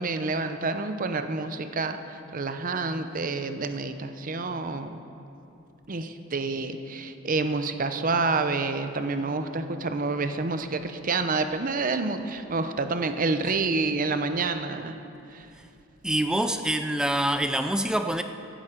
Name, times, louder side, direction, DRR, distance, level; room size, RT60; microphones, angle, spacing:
voice 1, 0.0-2.0 2.3-5.0 5.9-14.9 15.3-15.5, right 3 dB, 40° right, 9 dB, 0.7 m, -28 dB
voice 2, 16.0-18.2, right 1 dB, 5° right, 8 dB, 0.3 m, -25 dB
15.5 x 11.5 x 5.1 m, 2.7 s
head